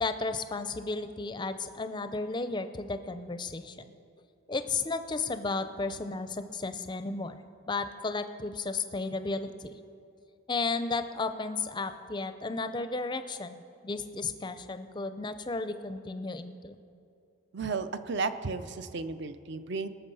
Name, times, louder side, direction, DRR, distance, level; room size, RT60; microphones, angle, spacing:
voice 1, 0.0-3.8 4.5-7.4 7.7-9.7 10.5-16.8, left 3 dB, 20° left, 10 dB, 0.4 m, -33 dB
voice 2, 17.5-19.9, right 4 dB, 55° right, 11 dB, 0.5 m, -33 dB
19.0 x 6.8 x 5.5 m, 2.8 s
head